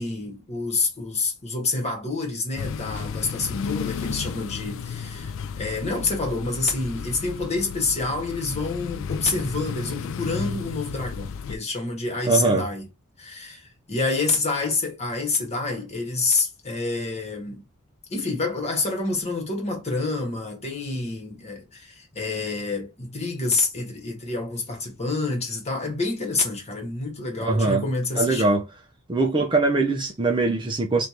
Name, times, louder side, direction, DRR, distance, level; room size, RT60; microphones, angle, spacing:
voice 1, 0.0-12.8 13.2-17.7 18.1-28.6, left 3 dB, 30° left, 1.4 m, -28 dB
sound 1, 2.6-11.6, left 6 dB, 60° left, 0.4 m, -33 dB
voice 2, 12.3-12.7 27.4-27.8 28.2-28.7 29.1-31.1, right 3 dB, 20° right, 0.5 m, -22 dB
3.3 x 2.5 x 4.2 m
head